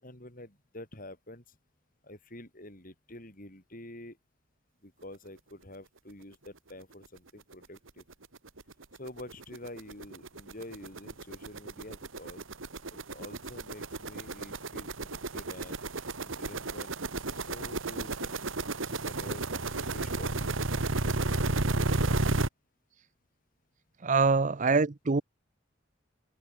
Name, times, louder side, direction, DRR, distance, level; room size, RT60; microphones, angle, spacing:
voice 1, 0.0-1.6 2.0-4.2 4.8-8.0 9.0-12.4 12.9-15.8 16.2-16.9 17.2-18.3 18.9-20.8, left 1 dB, 45° left, 7.9 m, -47 dB
sound 1, 7.0-7.1 7.5-7.6 7.9-22.5, right 2 dB, 90° right, 2.0 m, -33 dB
voice 2, 24.0-25.2, right 4 dB, 40° right, 0.6 m, -24 dB
head